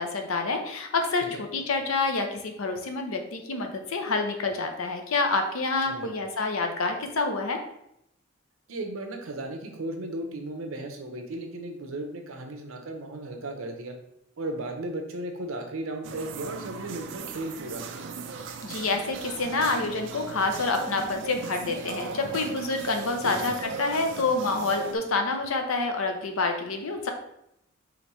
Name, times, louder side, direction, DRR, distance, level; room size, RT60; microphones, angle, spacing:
voice 1, 0.0-7.6 18.6-27.1, left 3 dB, 90° left, 5 dB, 0.7 m, -28 dB
voice 2, 8.7-14.0 14.4-18.1 23.2-23.6, right 1 dB, 85° right, 4 dB, 0.8 m, -35 dB
sound 1, 16.0-25.0, right 5 dB, 60° right, 0.4 m, -38 dB
5.0 x 3.1 x 3.1 m, 0.78 s
head